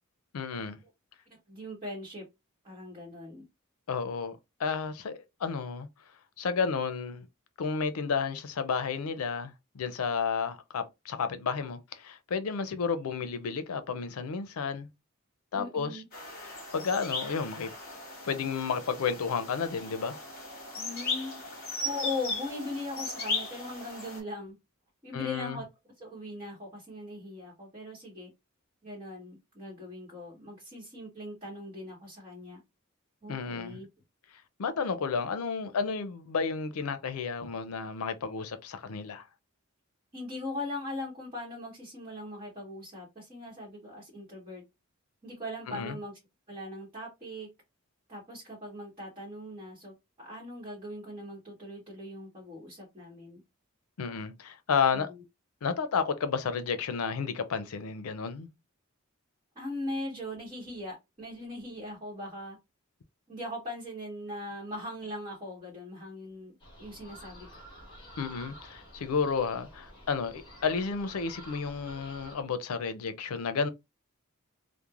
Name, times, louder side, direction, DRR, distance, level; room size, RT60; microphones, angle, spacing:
voice 1, 0.3-0.8 3.9-5.9 6.4-7.3 7.6-14.9 15.5-16.0 16.4-17.7 18.2-20.2 25.1-25.6 33.3-33.8 34.6-39.2 45.7-46.0 54.0-55.1 55.6-58.5 68.2-73.7, left 5 dB, 90° left, 0.5 m, -32 dB
voice 2, 1.3-2.2 2.6-3.4 15.5-16.1 20.7-24.6 25.0-25.7 26.0-28.3 28.8-32.6 33.2-33.9 40.1-44.6 45.2-46.2 46.5-47.5 48.1-53.4 54.9-55.2 59.5-62.6 63.3-66.5 66.8-67.6, left 1 dB, 25° right, 1.0 m, -40 dB
sound 1, 16.1-24.2, left 2 dB, 45° left, 1.1 m, -37 dB
sound 2, 66.6-72.3, right 1 dB, 20° left, 1.2 m, -50 dB
3.1 x 2.1 x 2.4 m
head